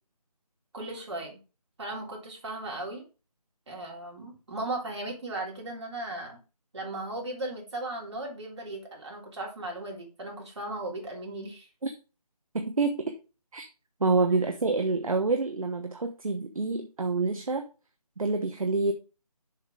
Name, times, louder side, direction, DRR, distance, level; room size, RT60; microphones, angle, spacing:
voice 1, 0.7-1.4 1.8-3.0 3.7-6.4 6.7-11.7, right 2 dB, 45° right, -1 dB, 3.5 m, -37 dB
voice 2, 12.5-13.2 13.5-13.7 14.0-17.7 18.2-18.9, right 3 dB, 60° right, 5 dB, 1.1 m, -27 dB
7.1 x 6.0 x 4.9 m, 0.32 s
figure-of-eight pair, 160°, 20 cm